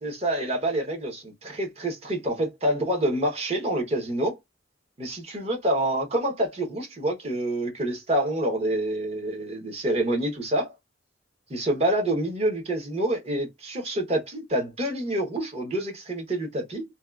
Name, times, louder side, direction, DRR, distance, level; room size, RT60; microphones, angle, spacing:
voice 1, 0.0-4.4 5.0-10.7 11.5-16.8, right 1 dB, 35° right, 0.9 m, -27 dB
2.7 x 2.2 x 2.3 m
head